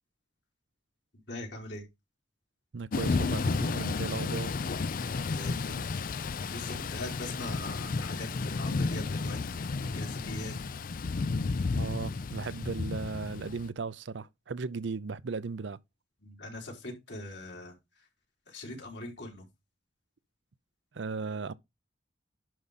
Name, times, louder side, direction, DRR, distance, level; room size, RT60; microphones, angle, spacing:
voice 1, 1.3-1.8 5.2-5.9 6.5-10.5 16.2-17.7 18.5-19.4, left 1 dB, 65° left, 4.0 m, -41 dB
voice 2, 2.7-4.5 11.8-15.8 20.9-21.5, right 4 dB, 75° right, 0.6 m, -36 dB
Thunder / Rain, 2.9-13.7, left 4 dB, 50° left, 0.4 m, -32 dB
11.0 x 5.0 x 4.1 m
head